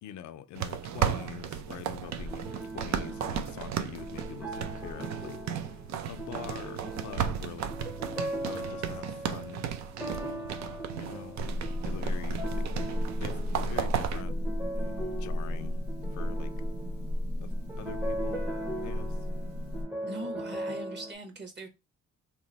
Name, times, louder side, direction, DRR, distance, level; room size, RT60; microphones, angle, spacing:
voice 1, 0.0-5.8 6.1-7.7 8.4-9.7 10.9-11.4 11.8-12.7 13.2-14.4 14.7-15.8 16.1-16.5 17.4-18.5 18.8-19.2, left 11 dB, 70° left, 0.5 m, -44 dB
sound 1, 0.6-14.2, right 8 dB, 65° right, 0.5 m, -35 dB
sound 2, 2.1-21.1, right 1 dB, 5° right, 0.6 m, -40 dB
sound 3, 11.4-19.8, left 1 dB, 85° right, 1.2 m, -33 dB
voice 2, 20.1-21.7, right 1 dB, 35° right, 1.2 m, -41 dB
2.9 x 2.1 x 3.9 m
cardioid pair, 90°, 30 cm